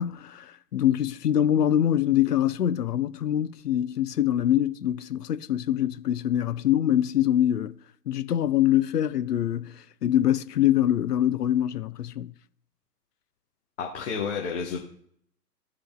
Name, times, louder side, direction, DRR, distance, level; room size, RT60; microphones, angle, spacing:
voice 1, 0.0-7.7 8.1-12.3, left 11 dB, 70° left, 0.6 m, -24 dB
voice 2, 13.8-14.8, left 6 dB, 45° left, 1.3 m, -30 dB
15.0 x 5.0 x 2.3 m
figure-of-eight pair, 120°, 50 cm